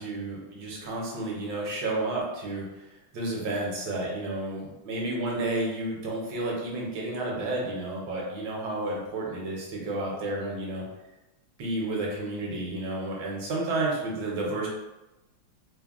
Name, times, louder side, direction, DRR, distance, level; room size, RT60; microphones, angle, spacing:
voice 1, 0.0-2.6 3.1-10.8 11.6-14.7, right 2 dB, 70° right, -3 dB, 1.3 m, -31 dB
3.4 x 2.0 x 2.3 m, 1.0 s
omnidirectional pair, 2.3 m